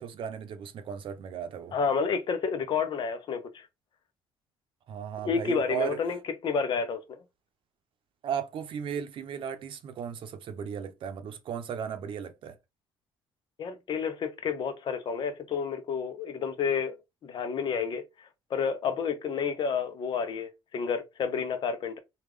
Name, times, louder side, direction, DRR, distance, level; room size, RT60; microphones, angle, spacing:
voice 1, 0.0-1.8 4.9-6.0 8.2-12.6, right 8 dB, 60° right, 0.6 m, -35 dB
voice 2, 1.7-3.7 5.2-6.2 6.4-7.2 13.6-17.0 17.2-22.0, left 6 dB, 55° left, 0.7 m, -30 dB
3.4 x 2.4 x 3.2 m
cardioid pair, 95°, 10 cm